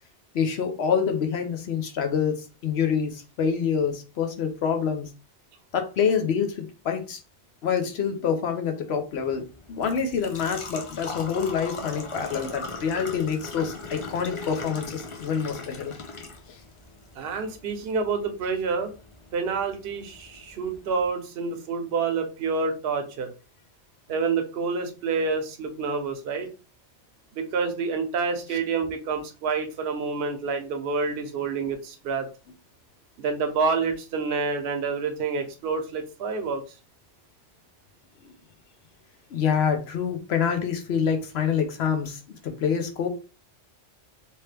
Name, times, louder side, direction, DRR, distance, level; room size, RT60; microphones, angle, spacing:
voice 1, 0.3-5.1 5.7-7.2 7.6-15.9 16.5-16.6 39.3-43.1, left 7 dB, 65° left, 0.9 m, -26 dB
Engine / Trickle dribble / Fill (with liquid), 9.1-21.1, left 3 dB, 45° left, 0.4 m, -40 dB
voice 2, 17.2-18.9 19.3-23.3 24.1-26.5 27.3-32.3 33.2-36.6, right 4 dB, 60° right, 0.8 m, -28 dB
3.0 x 2.9 x 3.2 m
omnidirectional pair, 1.2 m